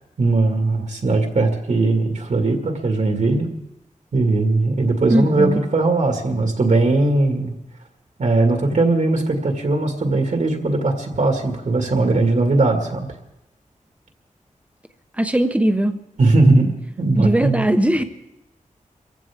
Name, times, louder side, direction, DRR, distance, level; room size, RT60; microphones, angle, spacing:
voice 1, 0.0-3.5 4.1-7.6 8.2-13.1 16.2-16.7 17.0-17.7, right 2 dB, 70° right, 3 dB, 2.0 m, -19 dB
voice 2, 5.1-5.6 15.2-16.0 17.2-18.0, right 1 dB, 10° right, 7 dB, 1.0 m, -19 dB
25.5 x 15.5 x 3.6 m, 0.90 s
wide cardioid pair, 105°, 13 cm